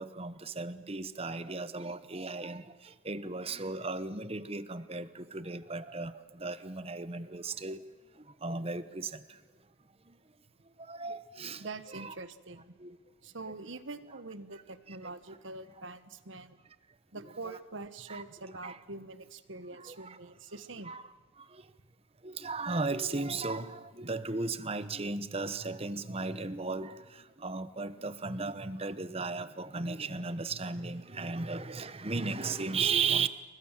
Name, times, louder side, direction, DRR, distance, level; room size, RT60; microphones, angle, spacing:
voice 1, 0.0-2.6 3.0-6.1 6.4-7.8 8.4-9.1 10.9-11.6 11.9-12.1 12.8-12.9 17.2-17.6 18.1-18.2 18.6-18.8 19.9-20.2 20.8-21.0 22.2-26.9 27.4-33.3, right 4 dB, 30° right, 1.1 m, -35 dB
voice 2, 11.6-12.7 13.2-16.6 17.1-20.9, right 3 dB, 70° right, 1.5 m, -44 dB
29.5 x 24.0 x 7.5 m
head